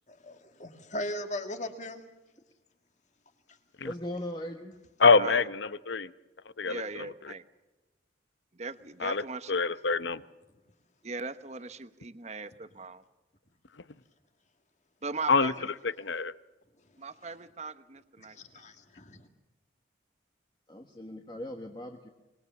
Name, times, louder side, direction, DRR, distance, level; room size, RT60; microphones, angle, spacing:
voice 1, 0.2-2.0 18.3-19.3, left 1 dB, 40° left, 7 dB, 2.0 m, -38 dB
voice 2, 3.8-4.7 20.7-22.1, left 1 dB, 25° left, 3 dB, 1.4 m, -39 dB
voice 3, 5.0-6.1 6.6-7.3 9.0-10.2 15.3-15.5 15.8-16.3, left 4 dB, 70° left, 14 dB, 0.8 m, -25 dB
voice 4, 6.7-7.4 8.6-9.5 11.0-13.0 15.0-15.7 17.0-18.7, right 4 dB, 35° right, 11 dB, 1.0 m, -39 dB
25.5 x 20.5 x 7.2 m, 1.1 s
head